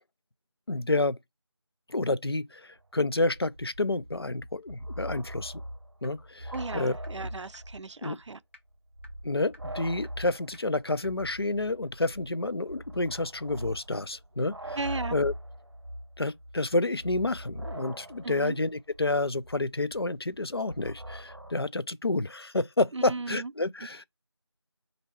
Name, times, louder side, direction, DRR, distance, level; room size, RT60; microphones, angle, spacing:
voice 1, 0.7-1.2 1.9-5.6 6.0-7.0 8.0-8.2 9.2-14.8 15.1-15.3 16.2-24.0, left 2 dB, 60° left, 0.5 m, -29 dB
sound 1, 2.8-2.9 3.1-7.9 8.2-8.3 8.9-21.5, equal, 65° right, 0.8 m, -42 dB
sound 2, 6.0-6.1 6.5-6.6 7.0-7.1 7.5-7.6 8.0-8.1 8.5-8.6 9.0-9.1 9.5-9.6 10.0-10.1 10.5-10.6 11.0-11.1, equal, 25° left, 0.8 m, -51 dB
voice 2, 6.5-8.4 14.8-15.2 18.2-18.6 22.9-23.5, right 3 dB, 80° right, 0.4 m, -36 dB
4.1 x 2.7 x 4.4 m
figure-of-eight pair, 180°, 15 cm